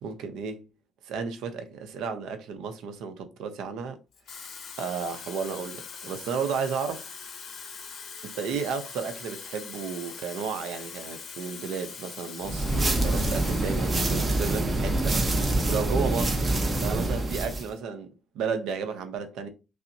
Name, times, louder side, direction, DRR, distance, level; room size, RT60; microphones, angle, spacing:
voice 1, 0.0-0.6 1.0-4.0 4.8-7.1 8.2-15.2 15.7-19.5, right 6 dB, 75° right, 0.6 m, -33 dB
Water tap faucet / Fill (with liquid), 4.1-14.0 14.4-14.7, left 6 dB, 45° left, 0.6 m, -42 dB
sound 1, 12.4-17.7, right 2 dB, 15° right, 0.6 m, -26 dB
5.4 x 2.0 x 2.6 m
cardioid pair, 170°, 0 cm